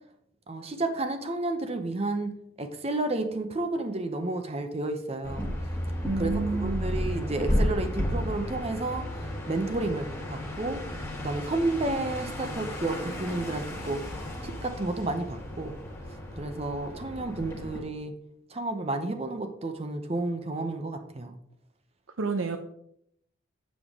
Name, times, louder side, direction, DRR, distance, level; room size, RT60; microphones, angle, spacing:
voice 1, 0.5-5.5 6.2-10.8 11.2-14.1 14.4-15.7 16.3-18.1 18.5-21.4, right 2 dB, 30° right, 7 dB, 0.6 m, -31 dB
sound 1, 5.2-17.8, equal, 15° left, 1.3 m, -33 dB
voice 2, 6.1-6.9 22.2-22.6, right 3 dB, 75° right, 6 dB, 0.5 m, -29 dB
7.2 x 6.5 x 3.6 m, 0.73 s
head